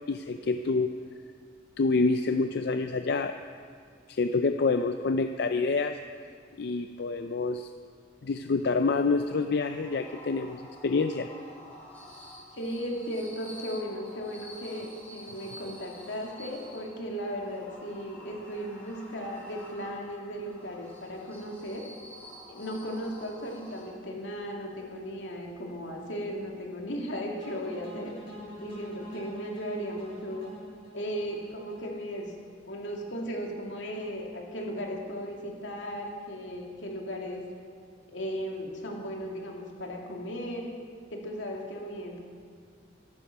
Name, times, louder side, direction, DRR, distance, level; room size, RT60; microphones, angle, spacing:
voice 1, 0.1-0.9 1.8-3.3 4.1-6.0 6.6-7.7 8.2-11.3, left 3 dB, 60° left, 8 dB, 0.4 m, -27 dB
sound 1, 8.5-24.2, left 1 dB, 10° left, 3.6 m, -49 dB
voice 2, 12.5-21.9 22.5-28.2 28.6-30.5 30.9-32.3 32.6-37.4 38.1-40.7 41.1-42.2, equal, 85° left, 0 dB, 2.3 m, -36 dB
sound 2, 27.4-32.5, equal, 30° left, 4.9 m, -46 dB
14.0 x 12.0 x 5.7 m, 2.1 s
head